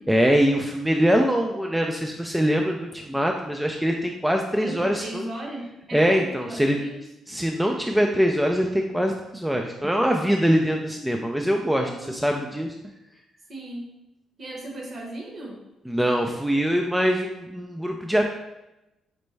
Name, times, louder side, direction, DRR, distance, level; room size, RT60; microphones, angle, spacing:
voice 1, 0.1-5.2 5.9-6.8 7.3-12.7 15.9-18.2, equal, 5° right, 2 dB, 0.3 m, -23 dB
voice 2, 4.6-7.1 11.8-12.4 13.5-13.9 14.4-15.6, right 1 dB, 45° right, 0 dB, 1.0 m, -37 dB
5.1 x 2.2 x 3.1 m, 0.93 s
cardioid pair, 90°, 0 cm